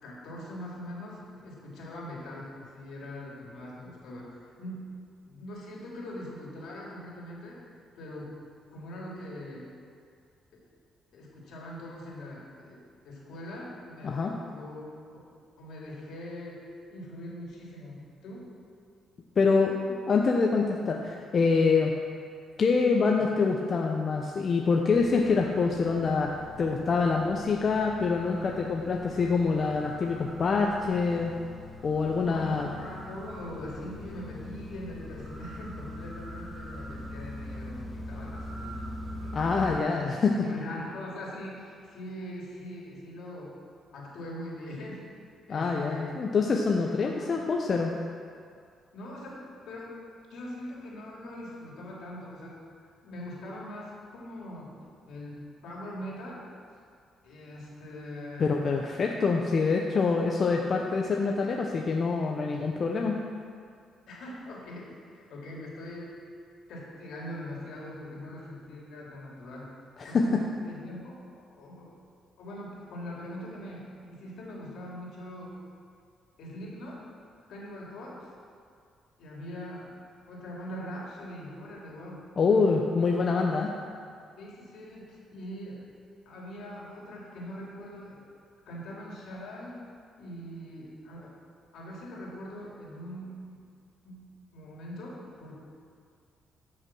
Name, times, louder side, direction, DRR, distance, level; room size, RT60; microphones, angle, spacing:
voice 1, 0.0-4.9 5.2-7.6 7.9-8.3 8.7-9.6 11.1-14.8 15.1-15.3 15.6-16.6 16.9-18.5 23.1-23.3 32.2-39.6 40.0-40.1 40.4-43.5 43.9-45.0 45.5-46.2 46.7-47.3 48.9-50.0 50.3-54.7 55.1-56.4 57.2-58.6 64.1-66.2 66.7-69.7 70.0-71.9 72.4-75.5 76.4-77.0 77.5-78.3 79.2-79.9 80.3-82.2 83.4-83.6 84.4-85.8 86.2-88.2 88.7-89.8 90.2-91.3 91.7-93.6 94.0-94.2 94.5-95.6, left 1 dB, 75° left, -4 dB, 3.2 m, -42 dB
voice 2, 19.4-21.9 22.6-26.3 26.6-31.3 31.8-32.7 39.3-40.3 45.5-47.9 58.4-63.2 70.0-70.4 82.4-83.7, left 4 dB, 45° left, 1 dB, 0.9 m, -25 dB
sound 1, 24.9-39.8, left 1 dB, 15° right, 3.1 m, -42 dB
13.0 x 6.1 x 6.2 m, 2.2 s
cardioid pair, 90°, 0 cm